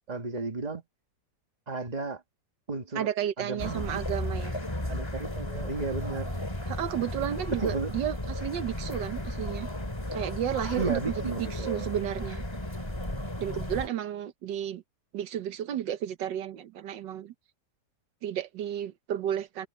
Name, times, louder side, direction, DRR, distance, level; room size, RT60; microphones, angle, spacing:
voice 1, 0.1-0.8 1.7-2.2 2.7-3.1 3.4-4.0 4.9-6.3 7.5-7.9 10.8-11.9, right 3 dB, 25° right, 1.9 m, -33 dB
voice 2, 2.9-4.6 6.7-9.7 10.1-11.0 11.5-12.4 13.4-14.8 15.1-17.3 18.2-19.7, right 10 dB, 85° right, 1.6 m, -32 dB
sound 1, 3.6-13.9, left 1 dB, 15° left, 2.5 m, -34 dB
omnidirectional pair, 1.9 m